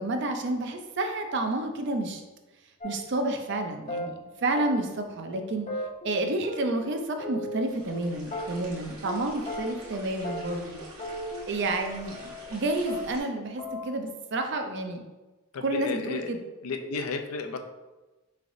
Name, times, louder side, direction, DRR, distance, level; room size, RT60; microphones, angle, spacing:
voice 1, 0.0-2.2 2.8-4.1 4.4-5.7 6.0-10.8 11.5-15.0 15.6-16.4, right 2 dB, 55° right, 5 dB, 0.4 m, -30 dB
sound 1, 2.8-3.2 3.5-3.6 3.9-4.1 4.5-5.0 5.3-5.4 5.7-6.9 7.2-8.0 8.3-8.8 9.0-9.2 9.5-9.9 10.2-10.7 11.0-12.6 12.9-13.3 13.6-13.8, left 1 dB, 35° left, 0.6 m, -36 dB
sound 2, 7.6-13.2, right 1 dB, 70° right, 1.1 m, -46 dB
voice 2, 15.5-16.3 16.6-17.6, left 4 dB, 80° left, 6 dB, 0.4 m, -33 dB
4.7 x 3.2 x 2.6 m, 1.1 s
head